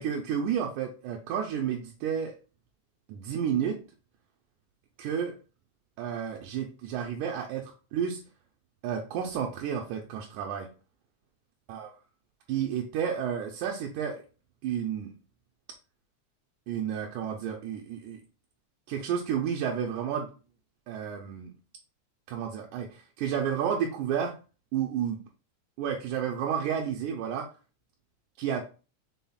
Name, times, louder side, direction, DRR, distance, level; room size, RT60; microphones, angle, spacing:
voice 1, 0.0-2.4 3.1-3.8 5.0-5.3 6.0-8.2 8.8-10.7 11.7-11.9 12.5-14.2 14.6-15.1 16.7-18.2 18.9-20.3 20.9-21.5 22.3-24.3 24.7-25.2 25.8-27.5 28.4-28.6, right 8 dB, 80° right, 1 dB, 2.0 m, -31 dB
5.6 x 3.8 x 2.3 m, 0.35 s
omnidirectional pair, 3.5 m